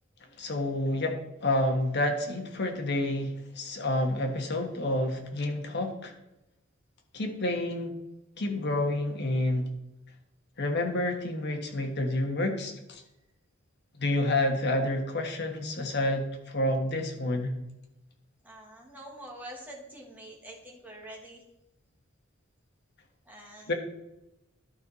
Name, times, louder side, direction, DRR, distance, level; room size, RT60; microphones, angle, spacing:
voice 1, 0.4-6.1 7.1-7.9 8.4-9.7 10.6-13.0 14.0-17.6 23.7-23.8, left 1 dB, 55° left, 3 dB, 1.4 m, -29 dB
voice 2, 18.4-21.4 23.3-23.7, right 1 dB, 10° right, -2 dB, 1.8 m, -46 dB
11.5 x 5.5 x 4.1 m, 0.91 s
head